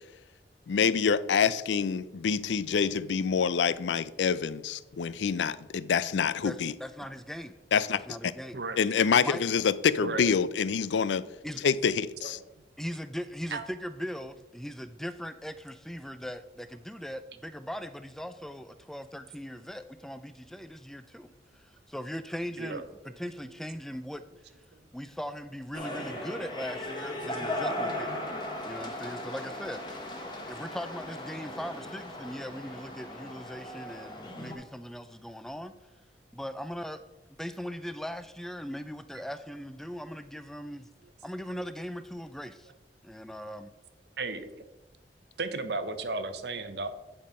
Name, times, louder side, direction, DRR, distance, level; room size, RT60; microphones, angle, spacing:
voice 1, 0.7-6.7 7.7-8.3 8.8-11.2 11.6-12.4, left 6 dB, 90° left, 0.4 m, -26 dB
voice 2, 6.4-7.5 8.1-8.6 9.2-9.4 11.4-11.6 12.8-21.3 21.9-22.8 23.2-24.2 24.9-28.2 28.6-29.8 30.5-35.7 36.3-37.0 37.4-40.9 41.2-42.7 43.0-43.7, equal, ahead, 0.3 m, -39 dB
voice 3, 11.2-11.7 12.2-12.5 13.5-13.6 19.6-19.7 20.5-20.6 22.6-23.6 41.0-41.1 44.2-44.5 45.4-46.9, right 3 dB, 70° right, 0.8 m, -36 dB
sound 1, 25.7-34.5, left 1 dB, 25° left, 1.3 m, -37 dB
10.5 x 4.3 x 5.4 m
head